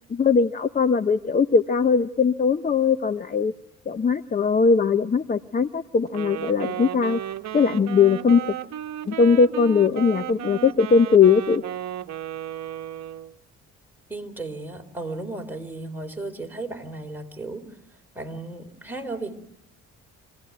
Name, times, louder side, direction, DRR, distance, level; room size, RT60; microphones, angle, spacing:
voice 1, 0.1-3.5 3.9-7.2 7.5-8.4 9.1-11.6, left 5 dB, 30° left, 11 dB, 0.8 m, -20 dB
Wind instrument woodwind instrument, 6.1-13.3, right 11 dB, 60° right, 1.1 m, -34 dB
voice 2, 14.1-17.7 18.2-19.3, right 2 dB, 5° right, 2 dB, 3.7 m, -34 dB
26.0 x 17.0 x 9.4 m, 0.88 s
cardioid pair, 90°, 30 cm